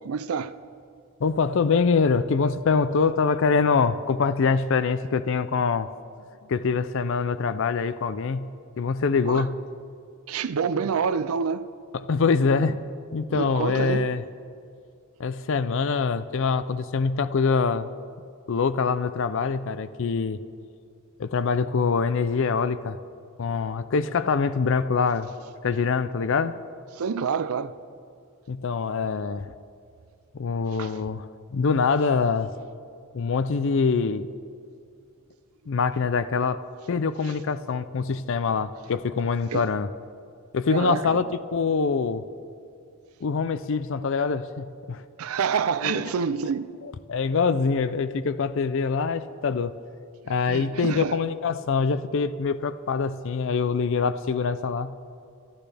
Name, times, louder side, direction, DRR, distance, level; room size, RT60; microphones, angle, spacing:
voice 1, 0.0-0.6 9.2-9.5 10.3-11.7 13.3-14.1 26.9-27.7 30.7-31.0 37.2-37.3 39.5-39.7 40.7-41.2 45.2-46.7 50.5-51.2, right 6 dB, 85° right, 0.5 m, -27 dB
voice 2, 1.2-5.9 6.5-8.5 8.8-9.5 12.1-12.8 13.1-14.2 15.2-17.9 18.5-20.4 21.2-23.0 23.4-25.3 25.6-26.5 28.5-29.5 30.4-32.5 33.1-34.3 35.7-36.6 36.9-39.9 40.5-41.2 41.5-42.2 43.2-45.0 45.8-45.9 46.8-49.7 50.3-54.9, left 5 dB, 65° left, 0.4 m, -24 dB
25.0 x 12.5 x 3.4 m
head